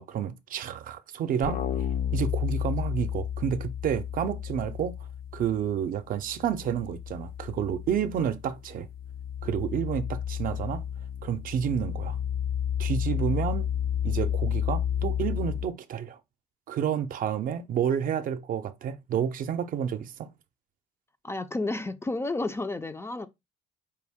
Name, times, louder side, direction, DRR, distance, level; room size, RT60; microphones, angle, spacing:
voice 1, 0.0-1.6 2.1-4.9 5.3-8.9 9.4-10.8 11.2-12.2 12.8-13.7 14.0-16.2 16.7-20.3, right 8 dB, 55° right, 0.5 m, -30 dB
sound 1, 1.4-5.8 6.1-15.7, left 9 dB, 60° left, 0.6 m, -31 dB
voice 2, 21.2-23.3, left 2 dB, 15° left, 0.3 m, -31 dB
4.7 x 2.6 x 3.5 m
cardioid pair, 110°, 17 cm